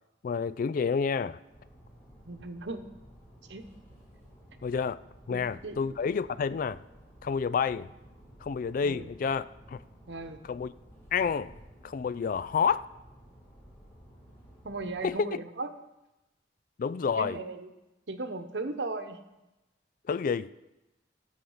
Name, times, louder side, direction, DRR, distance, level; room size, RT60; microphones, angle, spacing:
voice 1, 0.2-1.4 4.6-5.0 5.3-6.8 7.2-7.9 8.4-9.8 10.5-10.7 11.1-11.6 11.8-12.8 15.0-15.4 16.8-17.4 20.1-20.5, left 6 dB, 50° left, 17 dB, 0.3 m, -29 dB
sound 1, 1.5-15.1, equal, 15° left, 4.3 m, -54 dB
voice 2, 2.3-2.9 3.5-3.7 5.3-5.8 8.8-9.1 10.1-10.4 14.6-15.7 17.2-17.7 18.1-19.2, right 3 dB, 85° right, 8 dB, 0.9 m, -37 dB
12.5 x 7.2 x 5.6 m, 0.98 s
head